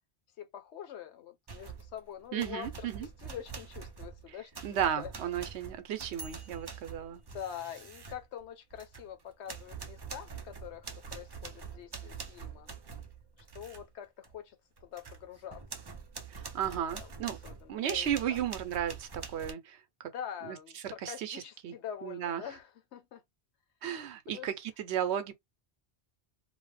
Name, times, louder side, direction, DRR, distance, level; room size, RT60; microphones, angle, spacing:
voice 1, 0.4-2.9 3.2-5.1 7.1-12.7 13.4-15.6 16.6-17.1 17.4-18.4 20.1-23.2 24.3-24.5, left 9 dB, 80° left, 1.0 m, -45 dB
sound 1, 1.5-2.0 2.4-9.1 9.5-13.8 14.2-14.4 14.8-19.5, right 5 dB, 35° right, 0.4 m, -45 dB
voice 2, 2.3-3.1 4.6-7.2 16.3-17.4 17.7-20.1 20.4-20.6 20.8-21.7 22.0-22.4 23.8-25.3, right 9 dB, 80° right, 0.9 m, -34 dB
2.8 x 2.0 x 3.1 m
omnidirectional pair, 1.1 m